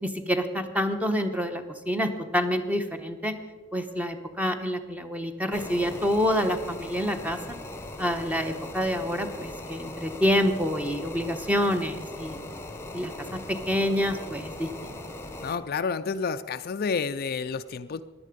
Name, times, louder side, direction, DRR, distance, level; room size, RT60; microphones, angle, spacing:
voice 1, 0.0-3.4 3.7-7.4 8.0-12.4 12.9-14.9, equal, 5° right, 6 dB, 1.0 m, -27 dB
sound 1, 5.5-15.6, left 2 dB, 15° left, 1.0 m, -39 dB
voice 2, 15.4-18.0, left 5 dB, 50° left, 11 dB, 0.4 m, -30 dB
16.5 x 11.0 x 5.2 m, 1.4 s
head